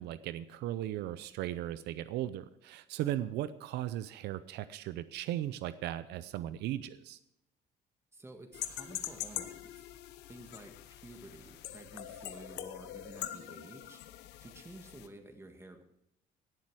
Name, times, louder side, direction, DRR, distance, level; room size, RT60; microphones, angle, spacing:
voice 1, 0.0-7.2, right 13 dB, 80° right, 14 dB, 0.6 m, -37 dB
voice 2, 8.1-9.8 10.3-14.0 14.4-15.8, right 2 dB, 15° right, 5 dB, 1.8 m, -51 dB
sound 1, 8.5-15.1, left 13 dB, 85° left, 0.9 m, -43 dB
17.0 x 7.5 x 4.8 m, 0.82 s
cardioid pair, 110°, 17 cm